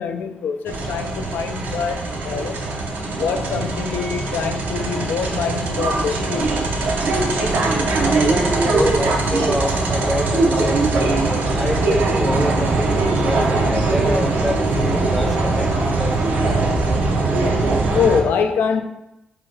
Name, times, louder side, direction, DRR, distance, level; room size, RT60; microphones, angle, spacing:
voice 1, 0.0-2.6 3.2-6.5 17.9-18.8, left 6 dB, 85° left, 6 dB, 0.3 m, -24 dB
sound 1, 0.7-18.2, right 3 dB, 80° right, 0.5 m, -21 dB
voice 2, 8.0-16.1, equal, 5° left, 2 dB, 0.6 m, -26 dB
3.7 x 2.7 x 3.2 m, 0.88 s
cardioid pair, 65°, 3 cm